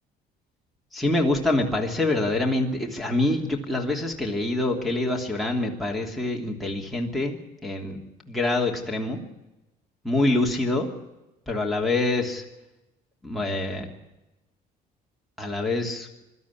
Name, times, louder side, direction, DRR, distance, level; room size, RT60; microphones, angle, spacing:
voice 1, 0.9-9.2 10.0-10.9 11.5-12.4 13.2-13.9 15.4-16.1, left 2 dB, ahead, -2 dB, 3.0 m, -25 dB
24.0 x 13.0 x 10.0 m, 1.0 s
cardioid pair, 150°, 17 cm